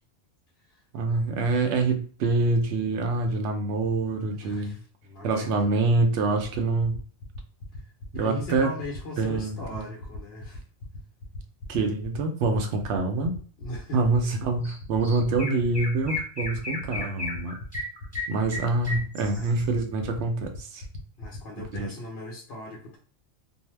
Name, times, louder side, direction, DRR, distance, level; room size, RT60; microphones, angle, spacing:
voice 1, 0.9-4.8 5.2-7.0 8.1-8.7 9.2-9.9 11.7-13.4 13.9-17.6 18.3-20.8 21.7-21.9, right 3 dB, 80° right, 5 dB, 0.9 m, -26 dB
voice 2, 4.3-5.7 7.7-7.8 8.1-10.6 13.6-14.0 19.3-19.5 21.2-23.0, left 1 dB, 65° left, -3 dB, 1.0 m, -39 dB
sound 1, 6.5-21.8, left 2 dB, 90° left, 1.0 m, -40 dB
Chirp tweet, 14.6-14.8 15.0-19.6, left 2 dB, 5° left, 1.0 m, -34 dB
2.6 x 2.0 x 3.1 m, 0.42 s
omnidirectional pair, 1.2 m